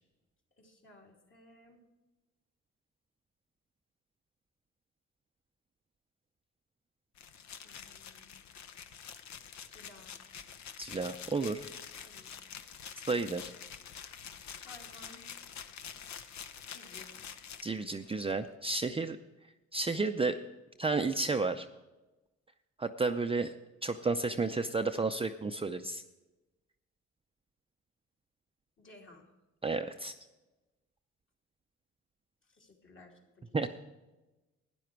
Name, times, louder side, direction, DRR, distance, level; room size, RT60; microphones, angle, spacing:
voice 1, 0.6-1.8 7.6-8.4 9.7-10.1 12.1-12.4 14.6-15.4 16.7-17.2 28.8-29.3 32.4-33.7, left 2 dB, 40° left, 0 dB, 2.8 m, -57 dB
sound 1, 7.2-18.3, left 8 dB, 65° left, 0.9 m, -47 dB
voice 2, 10.8-11.6 13.1-13.5 17.6-19.2 19.7-20.4 20.8-21.7 22.8-23.5 23.8-26.0 29.6-30.1 33.5-33.7, right 3 dB, 20° right, 6 dB, 0.5 m, -32 dB
12.5 x 10.0 x 4.6 m, 1.1 s
cardioid pair, 90°, 30 cm